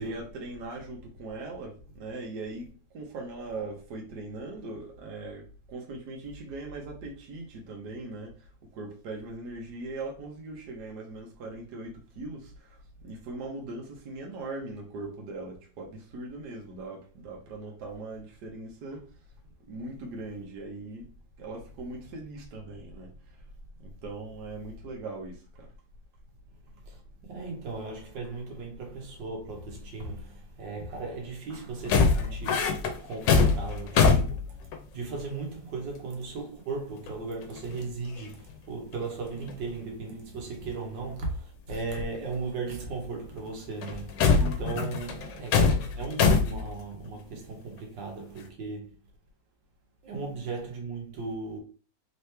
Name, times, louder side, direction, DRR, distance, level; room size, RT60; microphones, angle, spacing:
voice 1, 0.0-2.7 2.9-8.3 8.7-19.0 19.7-21.1 21.4-23.1 23.8-25.7 44.4-44.9 47.3-47.4, right 2 dB, 70° right, 1.5 m, -40 dB
voice 2, 26.9-34.6 34.9-48.9 50.0-51.6, right 3 dB, 85° right, 1.6 m, -37 dB
sound 1, 31.8-35.2 37.1-37.2 37.4-37.9 38.2-38.5 38.9-39.0 39.4-39.6 40.6-40.7 42.2-42.3 43.8-46.7, left 5 dB, 80° left, 1.4 m, -24 dB
3.8 x 3.0 x 3.3 m
omnidirectional pair, 1.9 m